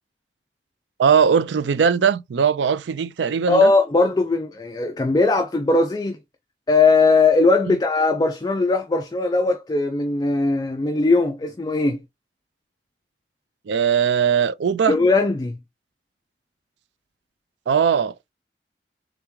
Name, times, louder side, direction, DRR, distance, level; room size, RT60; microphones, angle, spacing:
voice 1, 1.0-3.7 7.7-7.8 13.7-15.0 17.7-18.1, right 7 dB, 90° right, 0.4 m, -19 dB
voice 2, 3.5-6.2 6.7-12.0 14.8-15.6, left 3 dB, 20° left, 0.3 m, -19 dB
3.5 x 3.4 x 3.1 m
head